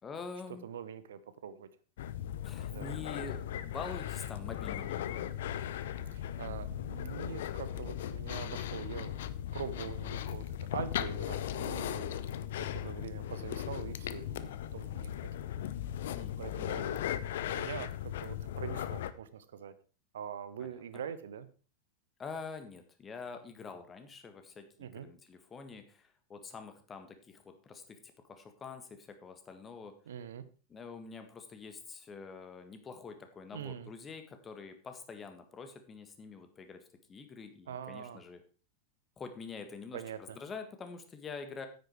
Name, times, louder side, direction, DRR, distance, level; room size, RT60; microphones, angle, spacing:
voice 1, 0.0-0.7 2.4-5.3 16.1-16.9 20.6-21.0 22.2-28.0 28.2-29.9 30.7-38.4 39.2-41.7, left 5 dB, 20° left, 7 dB, 1.7 m, -46 dB
voice 2, 0.6-1.7 2.7-2.9 6.1-9.2 9.5-12.2 12.6-15.6 16.1-19.7 20.1-21.5 24.8-25.1 30.1-30.4 33.5-33.9 37.7-38.2 39.9-40.4, right 8 dB, 60° right, 13 dB, 0.8 m, -44 dB
sound 1, 2.0-19.1, left 11 dB, 55° left, 0.6 m, -37 dB
9.6 x 9.2 x 4.6 m, 0.37 s
figure-of-eight pair, 90°, 0 cm